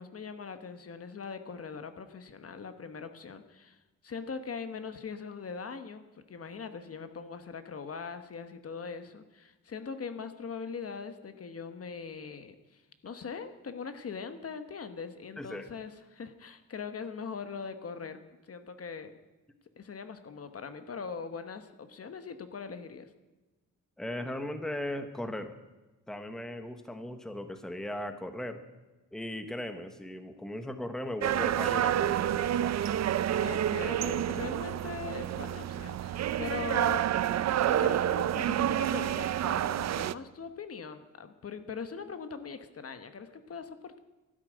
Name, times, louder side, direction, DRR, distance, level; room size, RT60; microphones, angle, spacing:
voice 1, 0.0-18.2 18.5-19.2 19.8-23.1 33.4-37.1 37.7-44.0, left 5 dB, 45° left, 9 dB, 1.2 m, -41 dB
voice 2, 15.4-15.7 24.0-25.5 26.1-28.6 29.1-33.0 33.3-33.4, left 1 dB, ahead, 8 dB, 1.1 m, -38 dB
sound 1, 31.2-40.1, right 11 dB, 55° right, 0.5 m, -29 dB
12.5 x 11.5 x 9.0 m, 1.1 s
wide cardioid pair, 135°, 33 cm